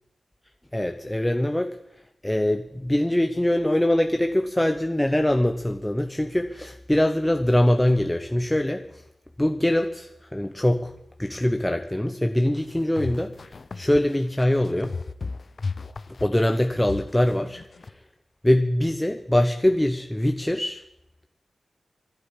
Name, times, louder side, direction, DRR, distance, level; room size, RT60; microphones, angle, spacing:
voice 1, 0.7-1.8 2.2-9.0 9.4-10.9 11.2-15.0 16.2-18.0 18.4-20.8, left 1 dB, 10° left, 6 dB, 1.0 m, -23 dB
sound 1, 12.6-17.9, left 4 dB, 60° left, 0.8 m, -34 dB
12.5 x 10.5 x 10.0 m, 0.82 s
cardioid pair, 45°, 0 cm